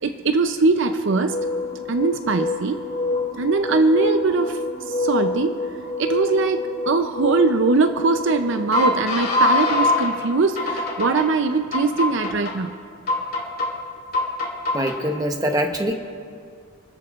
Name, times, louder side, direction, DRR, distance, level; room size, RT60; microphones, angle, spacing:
voice 1, 0.0-1.4 1.9-2.8 3.4-4.6 4.9-5.6 6.0-12.7, right 3 dB, 60° right, 8 dB, 0.5 m, -21 dB
sound 1, 1.1-10.1 10.6-11.2 11.7-12.5 13.1-13.7 14.1-14.9, left 2 dB, 45° left, 3.1 m, -25 dB
voice 2, 14.7-15.9, equal, 15° right, 4 dB, 0.9 m, -23 dB
28.5 x 13.0 x 2.4 m, 2.2 s
head